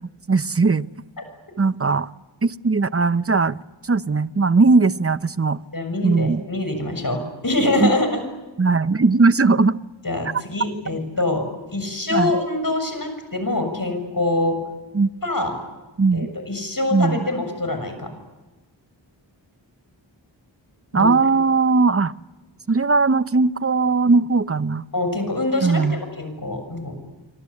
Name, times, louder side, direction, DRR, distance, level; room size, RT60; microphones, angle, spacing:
voice 1, 0.3-0.9 1.6-2.1 2.4-3.6 3.8-5.6 6.0-6.4 7.8-7.9 8.6-9.8 12.1-12.3 14.9-15.1 16.0-16.3 16.9-17.3 20.9-22.1 22.7-24.8 25.6-26.0, right 4 dB, 30° right, 15 dB, 0.8 m, -18 dB
voice 2, 5.7-8.2 10.0-11.4 11.7-14.6 15.2-15.5 16.1-18.1 20.9-21.1 24.9-27.0, left 2 dB, 45° left, 7 dB, 7.1 m, -24 dB
27.5 x 25.0 x 8.6 m, 1.1 s
wide cardioid pair, 40°, 46 cm